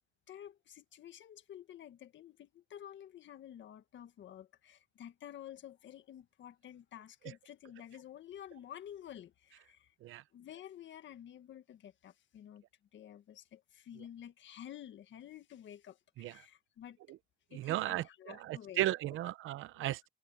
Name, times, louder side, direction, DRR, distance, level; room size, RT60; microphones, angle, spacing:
voice 1, 0.3-9.9 10.3-12.6 12.9-17.0 17.5-18.8, left 10 dB, 70° left, 1.7 m, -51 dB
voice 2, 17.5-20.1, right 14 dB, 85° right, 0.8 m, -36 dB
cardioid pair, 90°, 20 cm